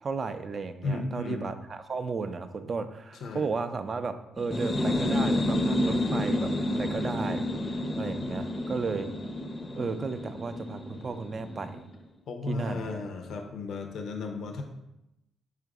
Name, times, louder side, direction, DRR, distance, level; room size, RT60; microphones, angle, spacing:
voice 1, 0.0-6.5 6.8-7.4 7.9-9.1 9.7-11.9 12.5-12.9, right 4 dB, 40° right, 10 dB, 0.3 m, -34 dB
voice 2, 0.8-1.5 3.2-3.5 12.3-14.6, left 3 dB, 70° left, 3 dB, 0.5 m, -34 dB
sound 1, 4.4-11.9, left 1 dB, 25° left, 0.5 m, -30 dB
4.6 x 2.5 x 4.6 m, 0.87 s
cardioid pair, 90°, 0 cm